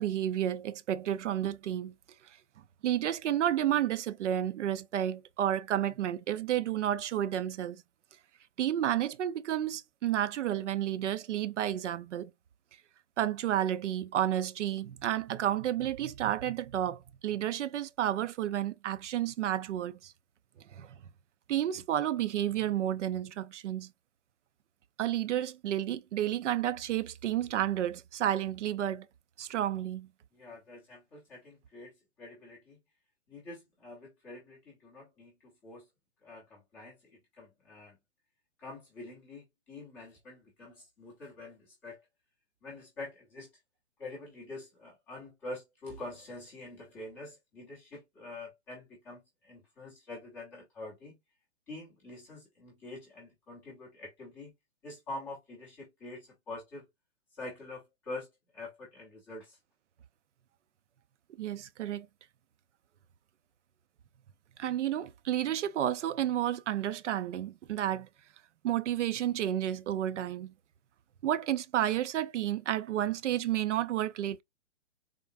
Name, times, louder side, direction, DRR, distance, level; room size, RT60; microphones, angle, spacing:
voice 1, 0.0-1.9 2.8-7.8 8.6-12.3 13.2-20.1 20.7-20.9 21.5-23.9 25.0-29.1 29.4-30.1 61.4-62.1 64.6-68.1 68.6-70.5 71.2-74.4, right 11 dB, 80° right, 0.5 m, -31 dB
voice 2, 30.3-32.8 33.3-35.8 36.2-38.0 38.6-42.0 42.6-43.5 44.0-51.2 51.7-54.5 54.8-56.9 57.4-58.3 58.5-59.6, left 2 dB, 5° left, 0.4 m, -46 dB
3.7 x 2.1 x 2.3 m
hypercardioid pair, 155°, 36 cm